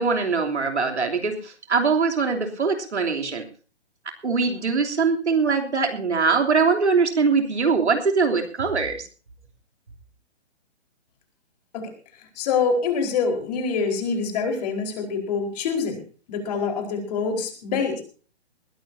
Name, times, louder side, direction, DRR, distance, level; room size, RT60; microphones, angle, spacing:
voice 1, 0.0-3.4 4.2-9.0, right 4 dB, 75° right, 4 dB, 3.3 m, -22 dB
voice 2, 12.4-16.0 16.3-18.0, left 5 dB, 35° left, 3 dB, 4.6 m, -25 dB
21.0 x 15.5 x 2.8 m, 0.38 s
hypercardioid pair, 145°, 34 cm